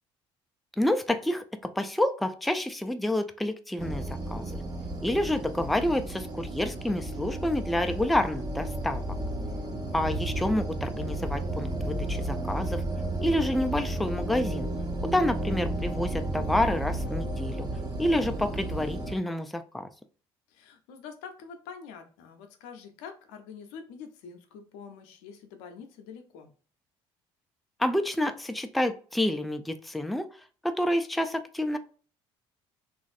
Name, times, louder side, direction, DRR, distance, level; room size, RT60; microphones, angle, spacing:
voice 1, 0.8-4.0 4.3-4.5 5.0-9.1 9.9-12.8 13.2-14.7 15.0-17.7 18.0-19.9 27.8-30.3 30.6-31.8, left 1 dB, ahead, 8 dB, 0.3 m, -28 dB
sound 1, 3.8-19.2, right 1 dB, 30° right, 0.8 m, -33 dB
voice 2, 9.3-9.8 20.5-26.5, left 6 dB, 80° left, 6 dB, 0.6 m, -46 dB
3.0 x 2.5 x 2.4 m, 0.40 s
hypercardioid pair, 65°, 13 cm